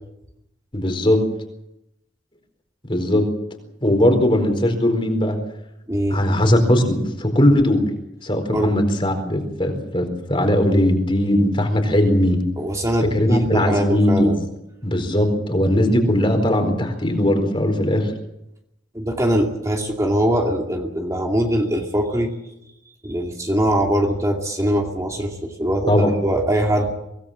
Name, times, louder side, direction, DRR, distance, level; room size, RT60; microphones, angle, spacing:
voice 1, 0.7-1.2 2.9-3.2 3.8-5.4 6.1-7.8 8.2-12.4 13.1-14.4 14.8-18.1 25.9-26.1, left 1 dB, 30° left, 5 dB, 4.4 m, -19 dB
voice 2, 5.9-6.2 8.5-8.7 12.6-14.4 18.9-22.3 23.0-26.9, equal, 15° right, 1 dB, 2.5 m, -22 dB
24.5 x 18.5 x 7.5 m, 0.85 s
head